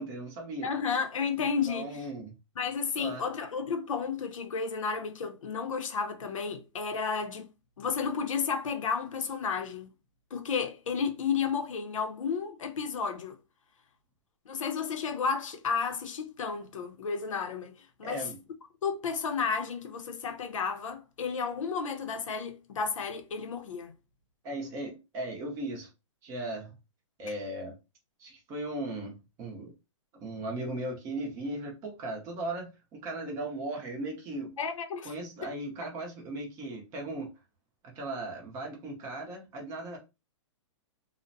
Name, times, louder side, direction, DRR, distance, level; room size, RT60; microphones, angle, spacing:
voice 1, 0.0-0.7 1.4-2.3 3.0-3.2 18.0-18.4 24.4-25.9 26.2-26.7 27.2-27.8 28.2-29.7 30.2-34.6 35.0-37.3 37.8-40.0, right 1 dB, 20° right, 0.7 m, -37 dB
voice 2, 0.6-2.0 2.6-7.5 7.8-9.9 10.3-13.4 14.5-18.3 18.8-23.9 27.3-27.4 34.6-35.1 35.4-35.5, left 6 dB, 85° left, 0.7 m, -32 dB
2.4 x 2.1 x 2.6 m
hypercardioid pair, 160°, 16 cm